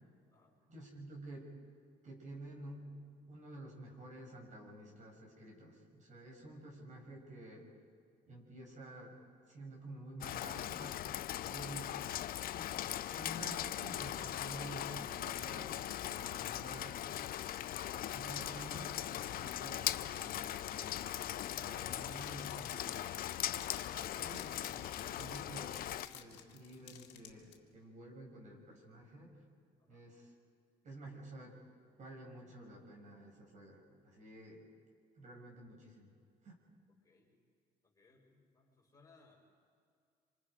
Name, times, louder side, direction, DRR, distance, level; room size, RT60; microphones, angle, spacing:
voice 1, 0.7-1.5 2.0-7.7 8.3-9.2 9.5-11.0 11.5-11.9 12.5-12.7 13.1-15.7 16.0-17.1 17.8-21.2 21.6-23.1 23.9-29.4 29.9-30.3 30.8-31.6 32.0-34.7 35.2-36.1 36.4-36.5, right 2 dB, 45° right, -1 dB, 6.3 m, -51 dB
Rain, 10.2-26.1, left 12 dB, 60° left, 0.7 m, -40 dB
sound 1, 22.0-27.5, left 11 dB, 85° left, 2.1 m, -53 dB
voice 2, 36.9-37.4 37.8-39.4, left 3 dB, 20° left, -2 dB, 5.9 m, -67 dB
26.5 x 26.0 x 5.2 m, 2.3 s
cardioid pair, 110°, 17 cm